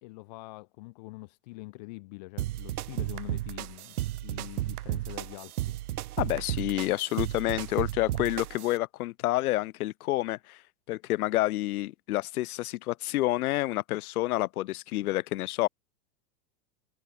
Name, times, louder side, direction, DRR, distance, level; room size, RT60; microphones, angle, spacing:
voice 1, 0.0-5.8, left 24 dB, 25° left, 0.9 m, -44 dB
sound 1, 2.4-8.8, right 15 dB, 70° right, 1.0 m, -34 dB
voice 2, 6.2-10.6 10.9-15.7, left 17 dB, 70° left, 0.6 m, -29 dB
supercardioid pair, 180°, 46 cm